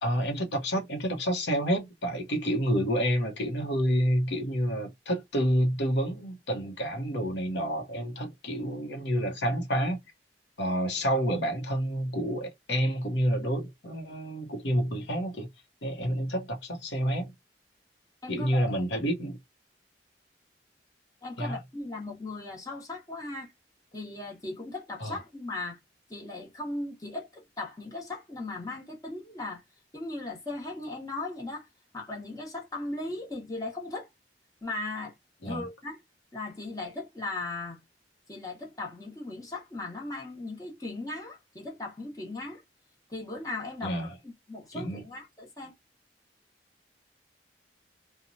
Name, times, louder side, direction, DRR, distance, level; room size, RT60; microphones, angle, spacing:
voice 1, 0.0-10.0 10.6-15.5 15.8-17.3 18.3-19.4 21.4-21.5 25.0-25.2 35.4-35.6 43.8-44.1 44.7-45.0, equal, 75° left, 0.8 m, -29 dB
voice 2, 18.2-18.8 21.2-23.5 23.9-25.8 26.1-29.6 29.9-31.7 31.9-34.1 34.6-35.1 35.4-36.0 36.3-37.8 38.3-42.6 43.1-44.0 44.2-45.7, left 2 dB, 20° left, 0.9 m, -37 dB
2.9 x 2.1 x 2.5 m
head